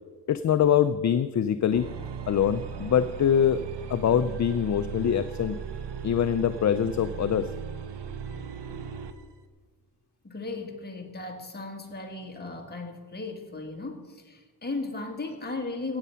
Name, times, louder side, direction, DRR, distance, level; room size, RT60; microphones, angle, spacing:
voice 1, 0.3-1.9 2.3-3.6 3.9-5.6 6.0-7.5, left 9 dB, 45° left, 11 dB, 0.4 m, -24 dB
sound 1, 1.7-9.2, right 7 dB, 70° right, 1.0 m, -38 dB
voice 2, 10.2-16.0, left 3 dB, 25° left, 2 dB, 1.7 m, -36 dB
15.5 x 8.3 x 5.6 m, 1.4 s
wide cardioid pair, 155°, 42 cm